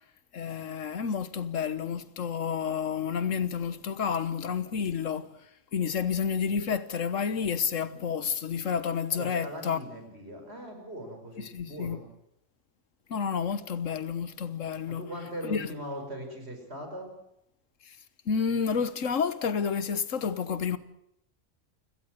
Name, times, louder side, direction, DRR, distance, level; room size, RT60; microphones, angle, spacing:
voice 1, 0.3-5.3 5.7-9.8 11.4-12.0 13.1-15.0 15.4-15.7 17.9-18.0 18.2-20.8, left 6 dB, 85° left, 1.5 m, -30 dB
voice 2, 9.1-12.0 14.9-17.1, equal, 55° right, 5.9 m, -40 dB
29.0 x 17.5 x 6.5 m
omnidirectional pair, 1.3 m